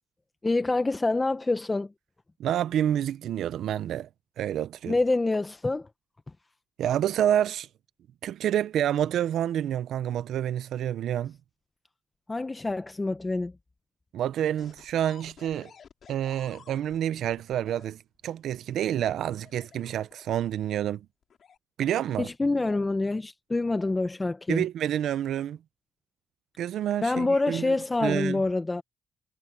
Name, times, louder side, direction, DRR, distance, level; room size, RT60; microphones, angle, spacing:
voice 1, 0.4-1.9 4.9-5.9 12.3-13.5 22.2-24.6 27.0-28.8, left 2 dB, 20° left, 0.9 m, -26 dB
voice 2, 2.4-4.1 4.4-5.0 6.8-7.7 8.2-11.4 14.1-15.7 16.1-21.0 21.8-22.3 24.5-25.6 26.6-27.7 28.0-28.4, right 10 dB, 75° right, 0.5 m, -28 dB
sound 1, 14.6-17.9 18.9-20.6 21.2-21.6, left 7 dB, 55° left, 5.8 m, -53 dB
cardioid pair, 90°, 0 cm